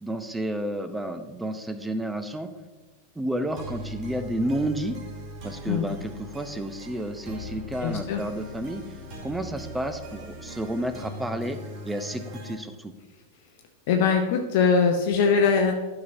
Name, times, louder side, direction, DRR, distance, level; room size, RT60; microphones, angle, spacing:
voice 1, 0.0-2.5 3.2-5.0 5.4-8.8 9.2-11.6 11.8-12.9, right 1 dB, 5° right, 9 dB, 0.6 m, -31 dB
sound 1, 3.5-12.6, equal, 40° right, 1.9 m, -40 dB
voice 2, 7.8-8.2 13.9-15.7, left 5 dB, 50° left, 3 dB, 0.7 m, -21 dB
12.0 x 5.9 x 2.7 m, 1.3 s
figure-of-eight pair, 90°, 0 cm